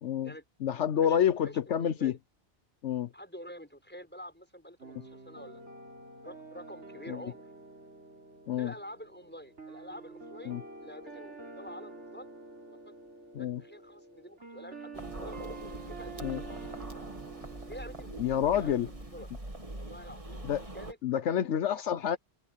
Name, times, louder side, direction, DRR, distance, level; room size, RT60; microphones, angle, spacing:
voice 1, 0.0-0.3 0.6-2.1 2.8-3.1 7.1-7.2 8.5-8.7 10.5-10.6 13.3-13.6 16.2-16.4 18.2-18.9 20.5-20.6 21.0-22.2, left 9 dB, 80° left, 1.1 m, -28 dB
voice 2, 0.7-1.2 1.4-2.2 3.1-5.6 6.2-7.4 8.5-12.3 12.6-12.9 13.3-15.4 15.9-16.6 17.6-18.1 18.6-19.3 19.7-20.4 20.7-21.0 21.7-21.8, equal, 10° left, 6.9 m, -48 dB
sound 1, 4.8-19.2, right 3 dB, 75° right, 3.9 m, -48 dB
sound 2, 14.9-20.9, right 1 dB, 30° right, 2.3 m, -43 dB
omnidirectional pair, 1.2 m